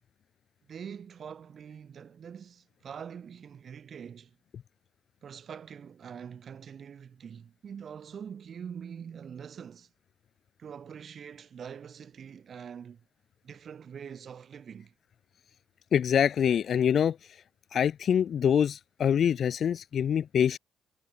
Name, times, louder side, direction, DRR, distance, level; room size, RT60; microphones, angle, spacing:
voice 1, 0.7-4.4 5.2-9.9 10.6-13.0 13.4-14.9, right 7 dB, 55° right, 5.1 m, -44 dB
voice 2, 15.9-17.2 17.7-20.6, left 8 dB, 60° left, 0.9 m, -25 dB
cardioid pair, 90°, 0 cm